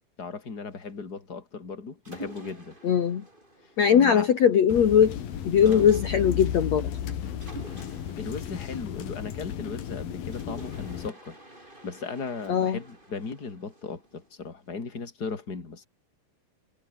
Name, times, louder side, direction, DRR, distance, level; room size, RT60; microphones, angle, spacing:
voice 1, 0.2-2.8 3.9-4.3 5.6-5.9 8.1-11.4 11.8-15.9, left 4 dB, 25° left, 4.0 m, -37 dB
Mechanisms, 2.1-4.5 5.7-6.5 7.4-9.7 10.3-14.5, right 1 dB, 15° right, 6.8 m, -48 dB
voice 2, 2.8-3.2 3.8-5.2 5.5-6.9 12.5-12.8, left 8 dB, 50° left, 3.1 m, -20 dB
sound 1, 4.7-11.1, left 9 dB, 85° left, 4.1 m, -34 dB
omnidirectional pair, 4.1 m